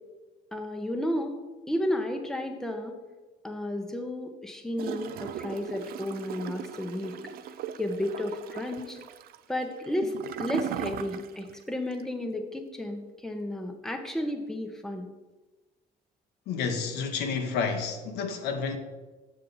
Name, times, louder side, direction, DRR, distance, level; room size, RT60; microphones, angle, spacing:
voice 1, 0.5-1.4 1.7-2.9 3.4-7.1 7.8-9.0 9.5-15.1, left 1 dB, 5° left, 0.8 m, -32 dB
Gurgling / Toilet flush, 4.8-11.6 11.9-12.0, right 9 dB, 65° right, 0.5 m, -38 dB
voice 2, 16.5-18.8, left 5 dB, 80° left, 0.9 m, -30 dB
7.4 x 6.4 x 4.0 m
cardioid pair, 110°, 17 cm